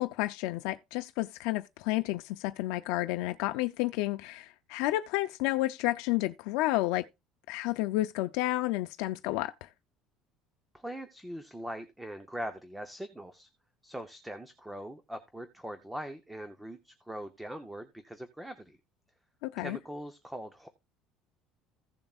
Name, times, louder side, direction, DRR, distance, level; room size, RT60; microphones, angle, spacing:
voice 1, 0.0-7.1 7.5-9.7 19.4-19.8, left 17 dB, 80° left, 0.4 m, -31 dB
voice 2, 10.7-13.5 13.8-18.8 19.6-20.7, equal, 5° right, 0.7 m, -41 dB
15.5 x 7.0 x 2.4 m
cardioid pair, 170°, 0 cm